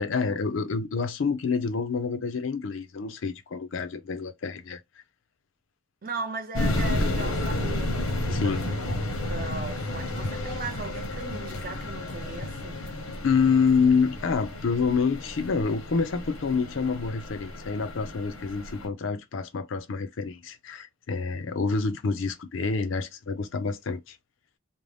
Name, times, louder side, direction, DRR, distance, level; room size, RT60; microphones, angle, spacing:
voice 1, 0.0-4.8 8.3-8.7 13.2-24.2, left 5 dB, 65° left, 0.4 m, -27 dB
voice 2, 6.0-9.0 9.2-12.9, right 3 dB, 40° right, 0.6 m, -38 dB
sound 1, 6.5-18.9, left 1 dB, 90° left, 0.9 m, -31 dB
2.6 x 2.0 x 3.2 m
head